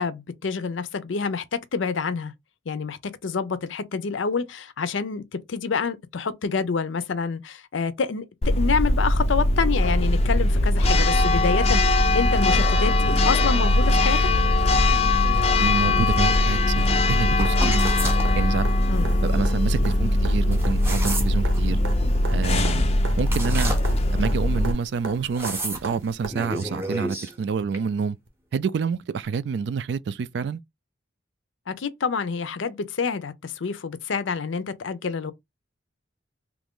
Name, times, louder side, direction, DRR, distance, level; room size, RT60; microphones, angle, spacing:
voice 1, 0.0-2.3 2.7-14.3 18.9-19.2 31.7-35.3, left 5 dB, 80° left, 0.5 m, -27 dB
Church bell, 8.4-24.7, left 2 dB, 30° left, 0.4 m, -20 dB
voice 2, 15.6-17.9 18.3-18.7 19.2-21.8 22.3-22.8 23.2-23.8 24.1-28.2 28.5-30.6, right 5 dB, 65° right, 0.3 m, -28 dB
sound 1, 17.1-26.3 28.3-28.4, right 3 dB, 85° right, 0.8 m, -39 dB
sound 2, 17.4-18.3 20.5-21.6 23.3-24.2 25.3-25.9 26.3-27.3 27.7-27.8, right 1 dB, 15° right, 0.7 m, -31 dB
3.0 x 2.5 x 3.6 m
head